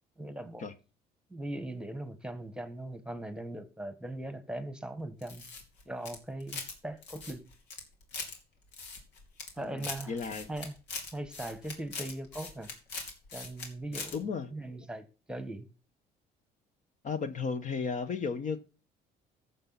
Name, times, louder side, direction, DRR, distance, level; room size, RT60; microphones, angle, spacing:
voice 1, 0.2-0.6 1.3-5.5 5.9-7.5 9.6-10.2 10.5-10.7 11.1-12.7 13.3-14.2 14.5-15.7, right 1 dB, 5° right, 1.2 m, -40 dB
sound 1, 5.2-6.8 7.0-8.3 8.7-9.5 9.8-13.7 13.9-14.2, left 4 dB, 90° left, 2.9 m, -41 dB
voice 2, 9.6-10.5 14.1-14.5 17.0-18.6, left 5 dB, 50° left, 1.1 m, -34 dB
14.5 x 7.0 x 4.1 m
cardioid pair, 110°, 17 cm